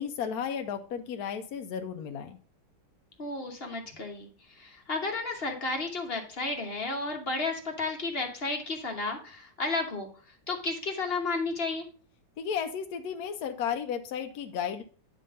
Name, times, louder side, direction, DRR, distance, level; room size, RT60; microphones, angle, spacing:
voice 1, 0.0-2.4 12.4-14.8, left 7 dB, 70° left, 5 dB, 1.1 m, -33 dB
voice 2, 3.2-10.1 10.5-11.8, left 3 dB, 40° left, 3 dB, 1.2 m, -32 dB
9.3 x 3.8 x 5.2 m, 0.40 s
omnidirectional pair, 1.8 m